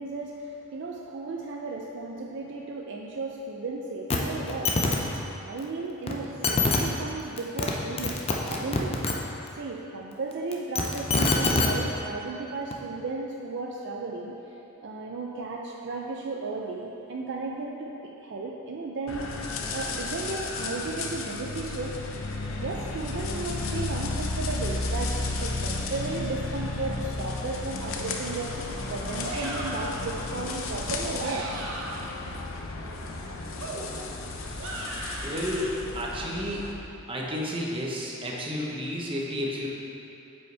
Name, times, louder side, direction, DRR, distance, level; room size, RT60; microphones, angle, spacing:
voice 1, 0.0-4.7 5.4-8.9 9.6-14.4 14.8-17.9 18.2-19.3 19.7-21.9 22.6-28.5 28.9-31.5, right 3 dB, 55° right, -1 dB, 0.5 m, -34 dB
sound 1, 4.1-4.2 4.5-5.0 6.1-6.2 6.4-6.8 7.4-7.7 8.0-9.1 10.5-11.7 12.7-12.8, left 3 dB, 30° left, 0.6 m, -24 dB
sound 2, 19.1-36.7, left 2 dB, 70° left, 0.7 m, -33 dB
sound 3, 29.2-30.0 31.0-32.2 33.6-35.7, right 2 dB, 70° right, 0.9 m, -37 dB
voice 2, 35.2-36.7 37.1-39.7, equal, 25° right, -3 dB, 0.9 m, -31 dB
9.0 x 5.5 x 3.4 m, 2.9 s
head